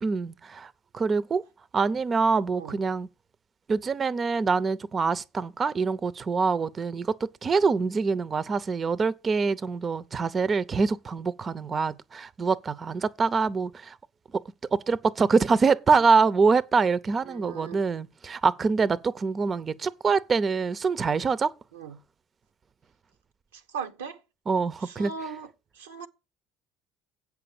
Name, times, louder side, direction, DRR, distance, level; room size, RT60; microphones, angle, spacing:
voice 1, 0.0-1.4 1.7-3.1 3.7-14.0 14.7-21.5 24.5-25.1, right 4 dB, 35° right, 0.6 m, -25 dB
voice 2, 2.5-2.8 17.3-17.8 21.7-22.0 23.7-24.2 24.8-25.5 25.8-26.1, right 6 dB, 90° right, 0.8 m, -38 dB
8.1 x 5.9 x 7.0 m
hypercardioid pair, 70°, 0 cm